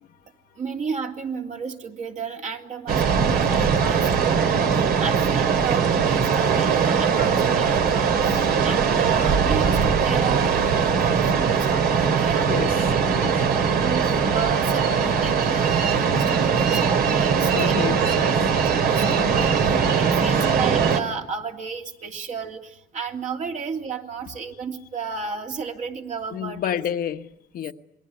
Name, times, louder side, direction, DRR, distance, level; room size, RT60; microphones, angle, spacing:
voice 1, 0.6-17.8 18.3-26.8, right 5 dB, 45° right, 2.9 m, -33 dB
sound 1, 2.9-21.0, right 6 dB, 70° right, 2.8 m, -21 dB
voice 2, 12.4-12.8 13.1-13.4 17.5-18.4 20.1-20.3 26.3-27.7, left 9 dB, 60° left, 1.3 m, -30 dB
27.5 x 21.0 x 9.5 m
cardioid pair, 110°, 17 cm